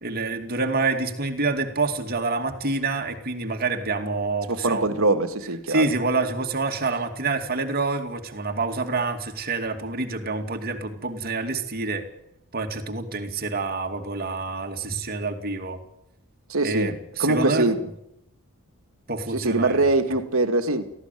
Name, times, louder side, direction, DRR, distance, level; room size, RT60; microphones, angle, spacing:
voice 1, 0.0-4.9 5.7-12.1 12.5-15.8 16.6-17.7 19.1-19.8, right 3 dB, 45° right, 2.4 m, -27 dB
voice 2, 4.5-5.9 16.5-17.8 19.3-20.9, right 2 dB, 65° right, 2.0 m, -23 dB
18.0 x 15.5 x 9.2 m
head